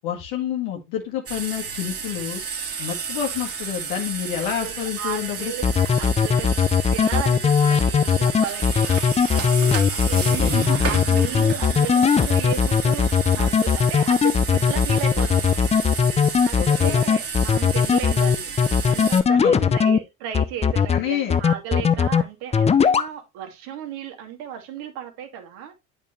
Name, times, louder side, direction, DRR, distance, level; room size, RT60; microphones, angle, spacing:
voice 1, 0.0-2.4 2.8-5.5 10.1-10.6 16.6-17.0 19.4-19.8 20.9-21.4 21.8-21.9, left 10 dB, 65° left, 1.7 m, -29 dB
sound 1, 1.3-19.2, right 5 dB, 35° right, 2.3 m, -31 dB
voice 2, 4.6-5.6 6.0-6.6 6.9-16.0 16.4-18.5 18.9-25.7, right 9 dB, 65° right, 2.5 m, -35 dB
sound 2, 5.6-20.0 20.3-21.0 21.3-22.2 22.5-23.1, left 6 dB, 15° left, 0.5 m, -18 dB
8.7 x 5.2 x 3.2 m
hypercardioid pair, 85°, 40 cm